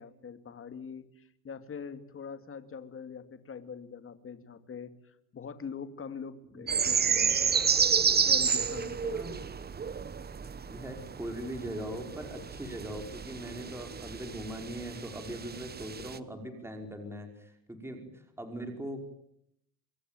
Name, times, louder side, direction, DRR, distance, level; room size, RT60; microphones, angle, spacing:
voice 1, 0.0-7.4 8.2-9.2, left 6 dB, 25° left, 10 dB, 2.6 m, -43 dB
voice 2, 6.5-6.9 9.1-9.3 10.7-19.0, right 1 dB, 5° right, 4 dB, 5.4 m, -40 dB
sound 1, 6.7-16.2, right 6 dB, 20° right, 1.2 m, -30 dB
26.5 x 22.0 x 9.2 m, 0.73 s
supercardioid pair, 110°, 47 cm